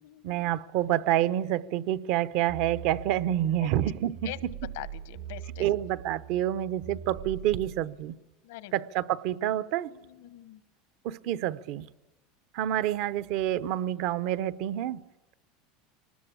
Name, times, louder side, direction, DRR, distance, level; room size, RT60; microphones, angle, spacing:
voice 1, 0.2-4.5 5.6-8.2 8.7-9.9 11.0-11.9 12.5-15.0, right 12 dB, 60° right, 0.8 m, -28 dB
sound 1, 2.5-7.8, right 9 dB, 90° right, 3.7 m, -42 dB
voice 2, 4.8-5.7 8.4-8.7 10.0-10.6, left 16 dB, 80° left, 1.3 m, -42 dB
24.5 x 19.5 x 8.6 m
supercardioid pair, 140°, 0 cm